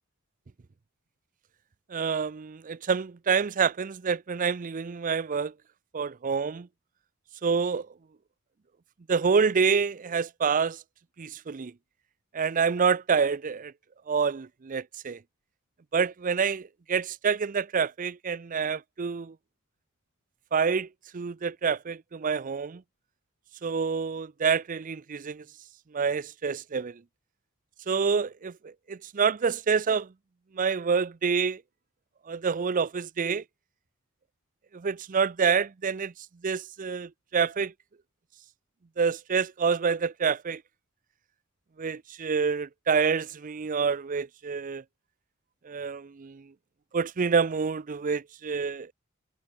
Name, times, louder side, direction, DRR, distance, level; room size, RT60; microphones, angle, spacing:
voice 1, 1.9-5.5 5.9-6.7 7.4-7.9 9.1-10.8 11.2-11.7 12.3-13.7 14.1-15.2 15.9-19.3 20.5-20.9 21.1-22.8 23.6-25.4 25.9-27.0 27.9-30.1 30.5-31.6 32.3-33.4 34.7-36.1 36.4-37.7 39.0-40.6 41.8-44.8 45.6-46.4 46.9-48.9, right 5 dB, 35° right, 0.5 m, -27 dB
head